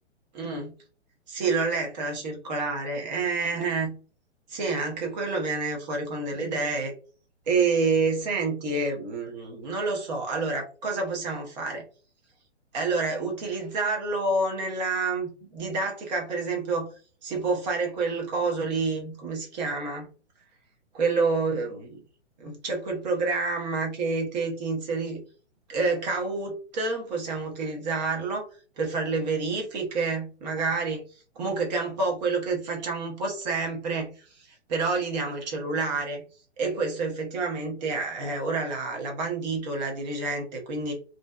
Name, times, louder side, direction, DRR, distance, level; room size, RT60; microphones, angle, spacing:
voice 1, 0.3-0.7 1.3-3.9 4.5-6.9 7.5-11.8 12.7-16.9 17.2-20.1 20.9-22.0 22.4-25.2 25.7-28.5 28.8-31.0 31.4-36.2 36.6-40.9, right 3 dB, 35° right, 1 dB, 0.8 m, -28 dB
2.6 x 2.1 x 2.3 m, 0.39 s
figure-of-eight pair, 125°, 35 cm